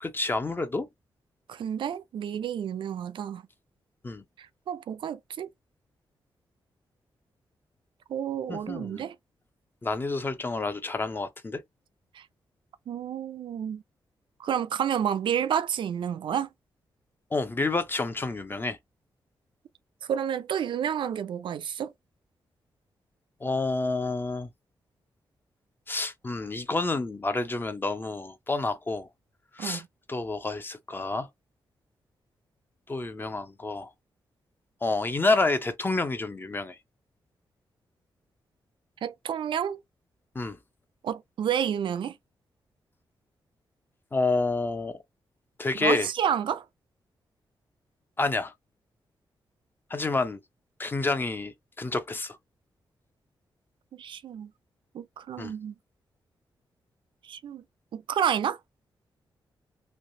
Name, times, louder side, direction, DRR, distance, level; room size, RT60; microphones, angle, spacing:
voice 1, 0.0-0.9 4.0-4.2 8.5-9.0 9.8-11.6 17.3-18.8 23.4-24.5 25.9-29.1 29.5-29.8 30.1-31.3 32.9-33.9 34.8-36.8 40.3-40.6 44.1-45.0 45.6-46.1 48.2-48.5 49.9-50.4 50.8-52.4 55.4-55.5, left 3 dB, 25° left, 0.5 m, -29 dB
voice 2, 1.5-3.4 4.4-5.5 8.1-9.2 12.1-12.3 12.9-13.8 14.4-16.5 20.1-21.9 29.6-29.9 39.0-39.8 41.0-42.2 45.8-46.7 53.9-54.5 54.9-55.7 57.2-57.6 57.9-58.6, right 9 dB, 70° right, 0.3 m, -30 dB
3.2 x 2.6 x 2.7 m
wide cardioid pair, 115°, 9 cm